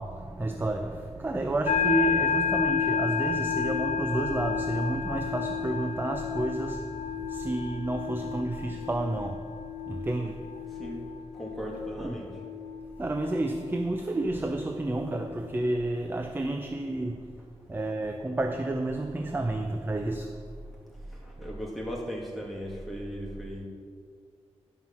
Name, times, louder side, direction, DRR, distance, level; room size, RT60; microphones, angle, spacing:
voice 1, 0.0-9.4 9.9-10.6 12.0-12.2 13.0-17.4 17.7-20.4, right 2 dB, 20° right, 5 dB, 0.5 m, -30 dB
sound 1, 1.6-15.5, left 6 dB, 80° left, 0.8 m, -32 dB
voice 2, 11.3-12.3 21.2-23.6, equal, ahead, -3 dB, 2.1 m, -37 dB
11.0 x 5.8 x 5.8 m, 2.1 s
wide cardioid pair, 100°, 11 cm